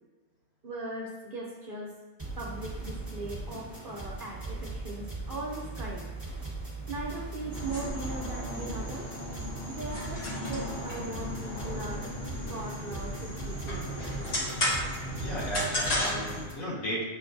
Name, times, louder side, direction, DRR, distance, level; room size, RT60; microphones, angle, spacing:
voice 1, 0.6-1.9 2.4-6.1 6.9-9.1 9.7-12.1 12.5-14.1, right 2 dB, 55° right, -4 dB, 0.6 m, -39 dB
sound 1, 2.2-16.5, right 2 dB, 10° right, 1.2 m, -40 dB
sound 2, 7.5-16.5, left 1 dB, 55° left, 1.0 m, -34 dB
voice 2, 15.1-17.0, right 1 dB, 85° left, -4 dB, 1.4 m, -35 dB
6.6 x 2.2 x 2.6 m, 1.3 s
omnidirectional pair, 1.4 m